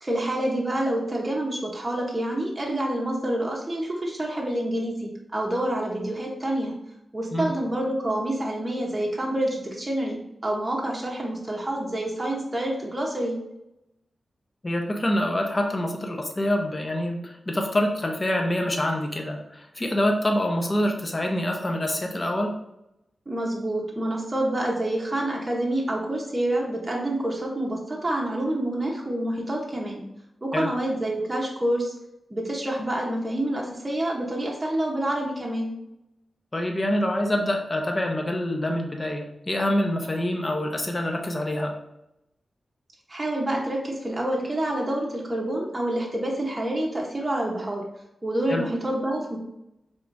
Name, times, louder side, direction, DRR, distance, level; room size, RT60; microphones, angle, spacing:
voice 1, 0.0-6.7 7.1-13.4 23.3-30.0 30.4-31.9 32.3-35.7 43.1-47.8 48.2-49.4, right 1 dB, 25° right, -3 dB, 1.0 m, -27 dB
voice 2, 14.6-22.6 30.5-30.7 36.5-41.7 48.5-48.6, left 1 dB, 35° left, 2 dB, 0.8 m, -26 dB
4.7 x 3.5 x 2.6 m, 0.86 s
cardioid pair, 65°, 0 cm